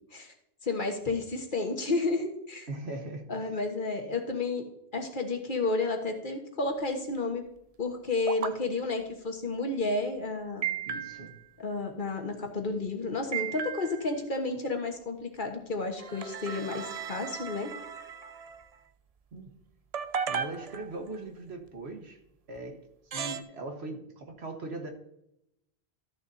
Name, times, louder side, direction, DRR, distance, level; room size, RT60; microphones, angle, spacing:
voice 1, 0.6-2.7 3.3-4.7 4.9-7.4 7.8-10.6 11.6-17.7, left 3 dB, 50° left, 3 dB, 1.5 m, -31 dB
voice 2, 2.7-3.5 10.9-11.3 19.3-19.6 20.3-22.2 22.5-24.9, right 2 dB, 90° right, 4 dB, 1.7 m, -40 dB
sound 1, 8.3-8.5 10.6-11.5 13.3-14.1 16.0-18.7 19.9-21.2 22.6-22.7 23.1-23.4, right 7 dB, 45° right, 0.5 m, -35 dB
13.5 x 6.7 x 2.7 m, 0.81 s
omnidirectional pair, 1.1 m